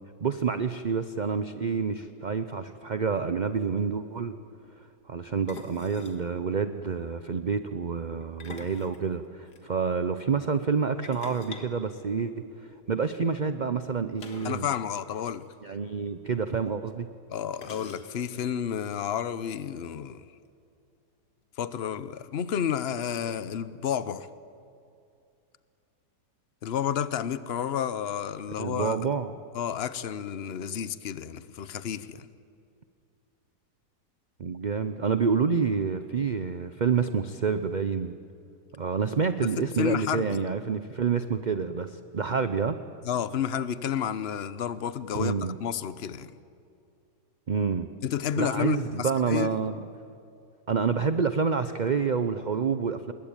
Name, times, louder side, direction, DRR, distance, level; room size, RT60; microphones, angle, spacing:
voice 1, 0.2-4.3 5.1-12.4 12.9-14.7 15.6-17.1 28.6-29.3 34.4-38.2 38.8-42.8 45.1-45.6 47.5-47.9 48.4-49.9 50.7-53.1, right 5 dB, 45° right, 0.5 m, -28 dB
sound 1, 3.2-3.3 3.4-3.7 5.5-6.3 8.2-9.6 11.0-12.7 14.2-14.7 14.9-15.0 15.4-15.5 16.5-16.6 17.5-18.4, left 4 dB, 65° left, 2.4 m, -46 dB
voice 2, 14.4-15.5 17.3-20.2 21.6-24.3 26.6-29.0 29.5-32.3 39.5-40.4 43.0-45.3 45.6-46.3 48.0-49.6, left 9 dB, 50° left, 0.8 m, -31 dB
27.0 x 21.0 x 9.0 m
omnidirectional pair, 1.9 m